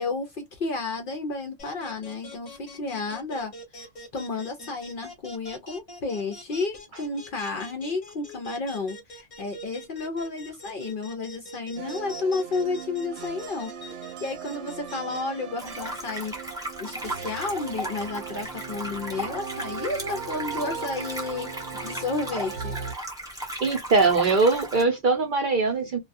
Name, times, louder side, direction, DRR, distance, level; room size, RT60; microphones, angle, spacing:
voice 1, 0.0-3.5 4.1-22.8, left 3 dB, 60° left, 0.6 m, -32 dB
sound 1, 1.6-15.2, equal, 30° left, 0.8 m, -43 dB
sound 2, 11.8-22.9, right 6 dB, 75° right, 0.9 m, -38 dB
sound 3, 15.6-24.8, right 1 dB, 5° right, 0.5 m, -36 dB
voice 2, 23.6-26.0, right 3 dB, 55° right, 0.6 m, -21 dB
2.3 x 2.2 x 2.5 m
omnidirectional pair, 1.3 m